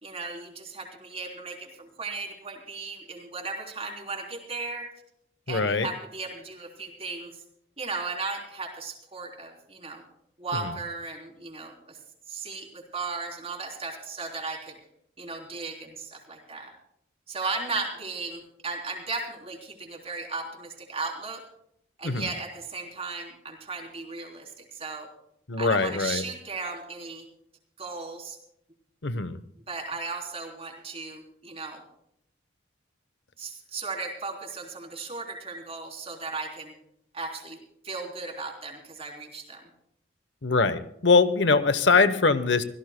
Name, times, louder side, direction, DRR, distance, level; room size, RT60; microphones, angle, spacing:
voice 1, 0.0-4.9 5.5-7.3 7.8-10.0 10.4-12.0 12.3-14.8 15.2-16.7 17.3-21.4 22.0-25.1 25.6-27.2 27.8-28.4 29.7-31.8 33.4-36.7 37.1-37.6 37.8-39.6, right 4 dB, 30° right, 2 dB, 3.4 m, -36 dB
voice 2, 5.5-5.9 10.6-10.7 22.0-22.3 25.5-26.2 29.0-29.4 40.4-42.6, left 4 dB, 65° left, 13 dB, 0.9 m, -22 dB
25.0 x 16.5 x 2.2 m, 0.74 s
head